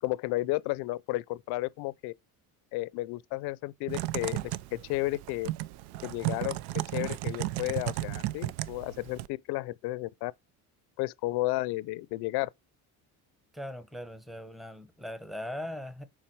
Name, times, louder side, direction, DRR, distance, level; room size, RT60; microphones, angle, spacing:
voice 1, 0.0-2.1 2.7-5.5 6.0-10.3 11.0-12.5, left 19 dB, 75° left, 0.6 m, -33 dB
Typing, 3.9-9.3, right 17 dB, 85° right, 0.6 m, -34 dB
voice 2, 13.5-16.1, left 1 dB, ahead, 0.7 m, -40 dB
7.3 x 5.0 x 4.6 m
cardioid pair, 140°, 39 cm